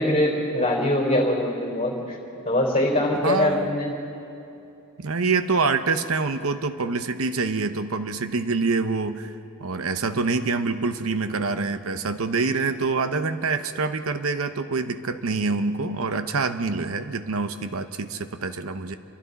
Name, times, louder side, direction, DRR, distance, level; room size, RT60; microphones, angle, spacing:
voice 1, 0.0-2.2 2.4-3.9, left 1 dB, 25° left, -1 dB, 4.2 m, -23 dB
voice 2, 3.2-3.7 5.0-9.3 9.6-18.9, right 4 dB, 65° right, 9 dB, 0.8 m, -26 dB
29.0 x 23.5 x 4.1 m, 2.8 s
head